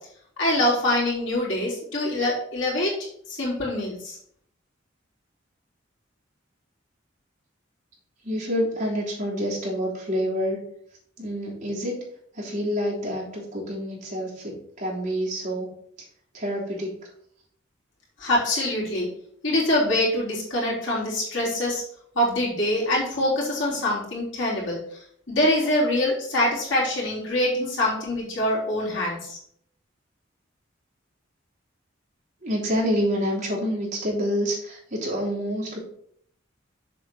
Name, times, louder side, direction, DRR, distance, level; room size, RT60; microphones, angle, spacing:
voice 1, 0.4-2.9 3.3-4.2 18.2-19.1 19.4-21.8 22.2-25.0 25.3-29.4, left 1 dB, 65° left, -5 dB, 3.6 m, -24 dB
voice 2, 8.2-10.6 11.2-11.9 12.3-15.7 16.3-16.9 32.4-35.8, equal, 40° right, -4 dB, 3.2 m, -27 dB
7.4 x 4.4 x 6.2 m, 0.65 s
head